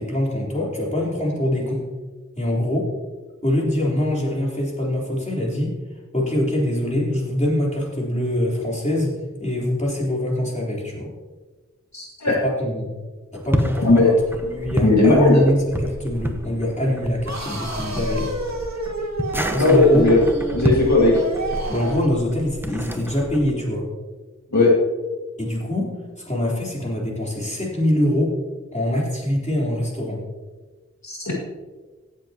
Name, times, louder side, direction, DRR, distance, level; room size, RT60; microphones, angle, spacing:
voice 1, 0.0-1.9 2.3-2.9 3.4-5.8 6.1-9.1 9.4-11.1 12.3-12.9 13.3-14.2 14.5-18.3 19.5-20.1 21.7-23.9 25.4-25.9 26.2-28.3 28.7-30.2, left 1 dB, 25° left, -4 dB, 4.0 m, -23 dB
voice 2, 11.9-12.4 13.8-14.1 14.8-15.4 19.6-20.2 20.5-21.2 24.5-24.7 31.0-31.3, left 2 dB, 70° left, -4 dB, 2.1 m, -16 dB
sound 1, 13.3-23.5, equal, 5° right, 1.0 m, -29 dB
sound 2, 17.3-22.2, right 2 dB, 65° right, 1.8 m, -30 dB
17.0 x 7.7 x 3.0 m, 1.3 s
wide cardioid pair, 45°, 30 cm